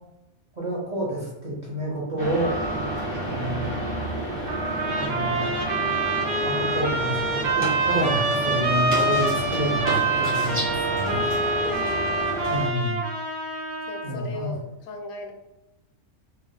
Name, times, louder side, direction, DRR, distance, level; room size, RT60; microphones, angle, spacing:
voice 1, 0.6-2.5 3.2-3.8 5.0-5.5 6.4-11.3 12.5-13.0 14.0-14.5, right 1 dB, 40° right, -4 dB, 0.7 m, -29 dB
sound 1, 2.2-12.7, right 1 dB, 10° right, 1.3 m, -30 dB
Trumpet, 4.5-14.2, right 2 dB, 75° right, 0.4 m, -26 dB
voice 2, 11.6-12.9 13.9-15.3, left 2 dB, 80° left, 3 dB, 1.0 m, -38 dB
3.5 x 2.7 x 2.2 m, 0.92 s
omnidirectional pair, 1.4 m